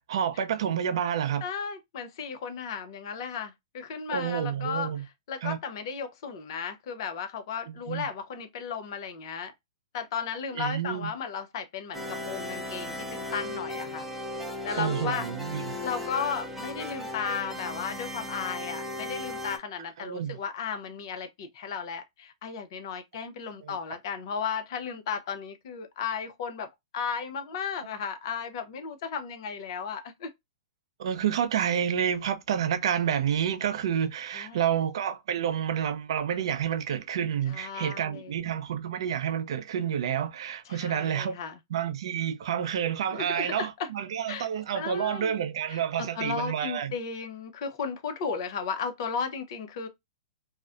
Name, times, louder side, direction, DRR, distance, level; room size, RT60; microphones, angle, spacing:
voice 1, 0.1-1.4 4.1-5.0 5.4-5.6 7.9-8.1 10.5-11.1 14.8-15.8 20.0-20.4 23.6-23.8 31.0-41.4 41.7-46.9, right 9 dB, 60° right, 0.5 m, -29 dB
voice 2, 1.4-4.9 5.3-9.5 9.9-14.1 14.6-15.3 15.8-26.7 26.9-30.3 34.3-34.6 37.5-38.4 40.7-41.6 43.1-43.9 44.3-44.5 44.7-45.4 45.7-49.9, left 6 dB, 55° left, 0.6 m, -35 dB
sound 1, 11.9-19.6, left 1 dB, 5° right, 0.6 m, -36 dB
2.5 x 2.1 x 2.3 m
hypercardioid pair, 120°, 3 cm